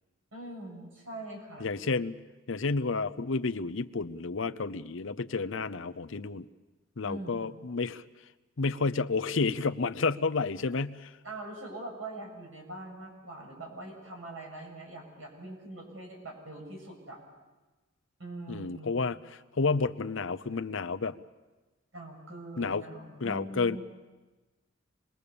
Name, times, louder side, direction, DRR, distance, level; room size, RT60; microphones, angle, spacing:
voice 1, 0.3-1.7 7.0-7.4 11.2-17.2 18.2-19.0 21.9-23.8, right 2 dB, 80° right, 0 dB, 7.6 m, -43 dB
voice 2, 1.6-2.2 2.5-6.5 7.0-8.0 8.6-11.1 18.5-19.2 19.5-21.2 22.6-22.8 23.2-23.8, left 4 dB, 70° left, 11 dB, 0.7 m, -30 dB
26.5 x 21.5 x 6.9 m, 1.2 s
head